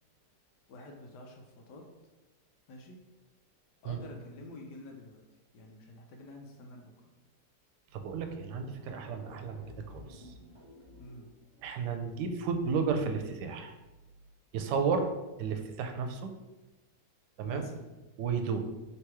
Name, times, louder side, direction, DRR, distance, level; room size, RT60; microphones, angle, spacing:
voice 1, 0.7-1.9 2.7-3.0 3.8-5.2 5.5-7.1 11.0-11.3 17.4-17.9, left 2 dB, 80° left, 2 dB, 1.2 m, -48 dB
voice 2, 7.9-10.3 11.6-13.7 14.5-15.1 15.4-16.3 17.4-17.7 18.2-18.6, right 5 dB, 80° right, 6 dB, 1.2 m, -33 dB
sound 1, 8.6-12.4, left 1 dB, 30° right, 0.7 m, -54 dB
3.3 x 2.9 x 4.6 m, 1.1 s
omnidirectional pair, 1.8 m